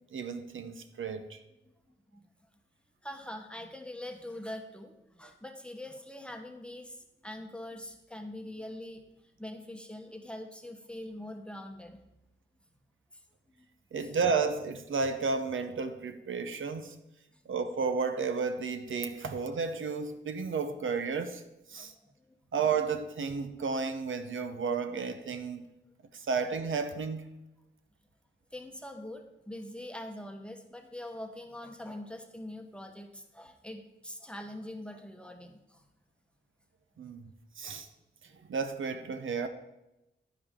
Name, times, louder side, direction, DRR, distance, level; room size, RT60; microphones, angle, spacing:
voice 1, 0.1-1.4 13.9-17.0 17.5-21.4 21.7-21.9 22.5-25.6 26.1-27.3 37.0-37.2 37.6-37.9 38.5-39.5, right 5 dB, 80° right, 0.8 m, -32 dB
voice 2, 3.0-7.0 7.2-9.0 9.4-12.0 13.1-13.2 13.6-13.7 14.0-14.1 17.3-17.4 21.7-22.4 28.5-35.8, left 1 dB, 5° left, 0.9 m, -43 dB
10.5 x 10.0 x 3.6 m
wide cardioid pair, 130°, 20 cm